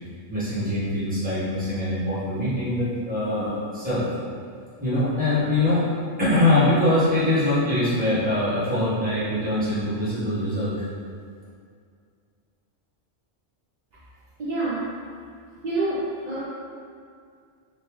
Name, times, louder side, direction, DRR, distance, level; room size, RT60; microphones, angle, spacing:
voice 1, 0.3-4.0 4.8-5.8 6.2-10.7, left 1 dB, 5° right, -12 dB, 1.1 m, -23 dB
voice 2, 14.4-14.9 15.6-16.4, right 2 dB, 65° right, -8 dB, 0.4 m, -27 dB
3.6 x 2.5 x 3.0 m, 2.2 s
omnidirectional pair, 1.3 m